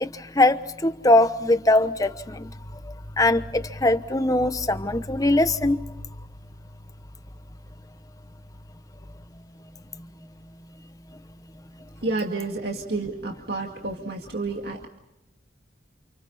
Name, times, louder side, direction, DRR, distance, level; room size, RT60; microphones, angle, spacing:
voice 1, 0.0-2.5 3.2-5.8, left 2 dB, 20° left, 11 dB, 1.0 m, -21 dB
voice 2, 12.0-14.9, right 3 dB, 60° right, 1 dB, 2.1 m, -30 dB
30.0 x 28.5 x 4.2 m, 0.94 s
head